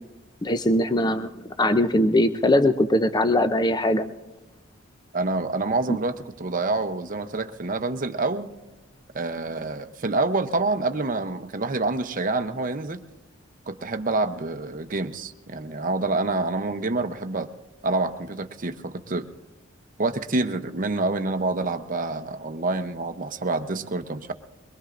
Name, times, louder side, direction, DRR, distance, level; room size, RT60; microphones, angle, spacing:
voice 1, 0.4-4.0 5.9-6.0, left 1 dB, 20° left, 10 dB, 0.5 m, -21 dB
voice 2, 5.1-8.5 9.1-13.0 13.7-17.5 17.8-19.2 20.0-24.3, right 3 dB, 40° right, 9 dB, 0.7 m, -27 dB
23.0 x 21.5 x 2.5 m, 1.1 s
head